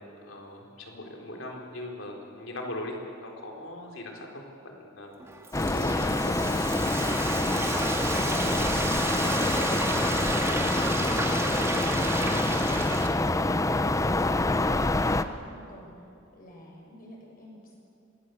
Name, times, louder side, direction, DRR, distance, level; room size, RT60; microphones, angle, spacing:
voice 1, 0.0-5.3 5.6-6.3, left 1 dB, 70° left, 1 dB, 4.1 m, -40 dB
Frying (food), 5.2-13.1, right 2 dB, 15° right, 2.3 m, -32 dB
sound 1, 5.5-15.2, left 2 dB, 15° left, 0.7 m, -26 dB
voice 2, 13.8-17.7, equal, 45° left, -1 dB, 7.1 m, -49 dB
26.5 x 20.5 x 8.2 m, 2.6 s
head